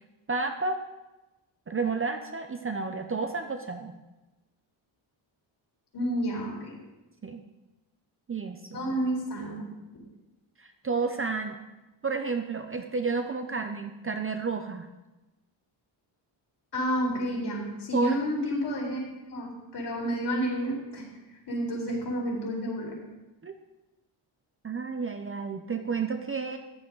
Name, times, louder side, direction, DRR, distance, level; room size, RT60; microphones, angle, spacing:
voice 1, 0.3-0.8 1.7-3.9 7.2-7.4 8.3-8.9 10.6-11.6 12.0-14.9 17.9-18.2 23.4-23.5 24.6-26.6, right 4 dB, 30° right, 6 dB, 0.7 m, -31 dB
voice 2, 5.9-6.8 8.7-9.6 9.9-10.0 16.7-19.0 19.3-21.1 21.5-23.0, equal, 55° left, -2 dB, 4.1 m, -30 dB
14.5 x 10.5 x 3.9 m, 1.0 s
wide cardioid pair, 160°, 48 cm